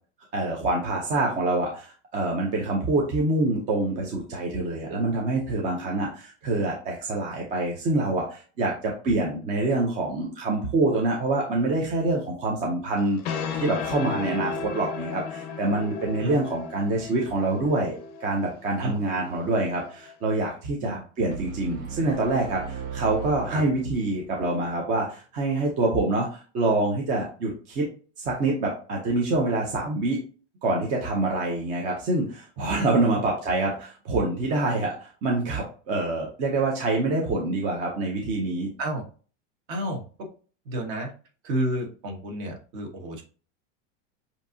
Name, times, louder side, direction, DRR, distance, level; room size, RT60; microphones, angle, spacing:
voice 1, 0.3-27.9 28.2-30.2 30.6-38.7, right 2 dB, 20° right, -1 dB, 0.6 m, -26 dB
sound 1, 13.0-20.1, left 5 dB, 35° left, 0.6 m, -35 dB
sound 2, 21.3-24.4, right 7 dB, 70° right, 1.7 m, -37 dB
voice 2, 39.7-40.0 40.6-41.1 41.4-43.2, right 1 dB, 40° right, 2 dB, 1.4 m, -30 dB
7.2 x 2.7 x 2.7 m, 0.38 s
supercardioid pair, 165°, 37 cm